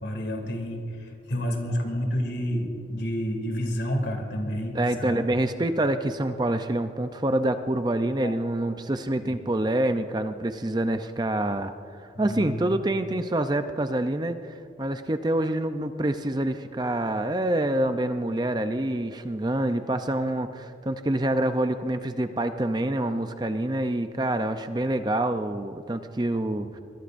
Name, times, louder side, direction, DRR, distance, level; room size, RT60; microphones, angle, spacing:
voice 1, 0.0-5.2 8.2-8.6 9.2-9.4 12.1-12.7 24.4-24.6, equal, 70° left, 2 dB, 2.8 m, -30 dB
voice 2, 4.7-26.8, right 1 dB, 25° right, 8 dB, 0.5 m, -26 dB
24.0 x 21.5 x 2.6 m, 2.4 s
head